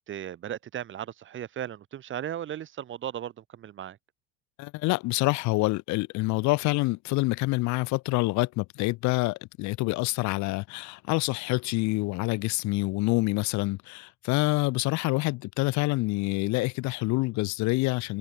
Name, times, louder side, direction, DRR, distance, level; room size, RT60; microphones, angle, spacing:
voice 1, 0.1-4.0, right 10 dB, 40° right, 1.4 m, -36 dB
voice 2, 4.6-18.2, left 22 dB, 60° left, 1.6 m, -27 dB
supercardioid pair, 95°, 32 cm